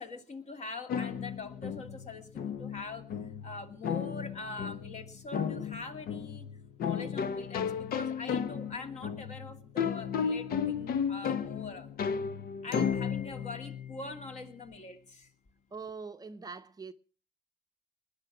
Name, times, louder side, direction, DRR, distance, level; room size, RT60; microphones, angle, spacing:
voice 1, 0.0-6.5 6.8-11.9 12.6-15.3, left 3 dB, 40° left, 2.3 m, -43 dB
sound 1, 0.9-14.5, left 7 dB, 60° left, 1.1 m, -34 dB
voice 2, 15.7-16.9, right 5 dB, 20° right, 0.8 m, -42 dB
20.5 x 10.0 x 6.1 m
cardioid pair, 110°, 17 cm